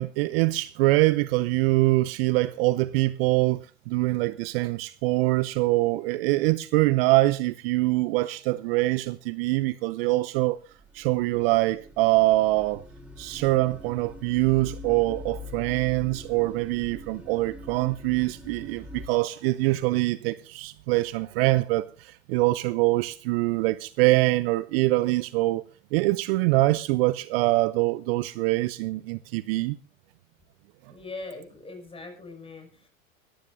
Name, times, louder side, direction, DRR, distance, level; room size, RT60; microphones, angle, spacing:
voice 1, 0.0-3.6 3.9-10.6 10.9-12.8 13.2-25.6 25.9-29.8, right 20 dB, 45° right, 0.6 m, -24 dB
sound 1, 10.4-19.1, left 2 dB, 5° right, 2.4 m, -43 dB
voice 2, 30.9-32.9, left 3 dB, 15° left, 6.1 m, -41 dB
21.0 x 14.0 x 2.6 m
hypercardioid pair, 100°, 40 cm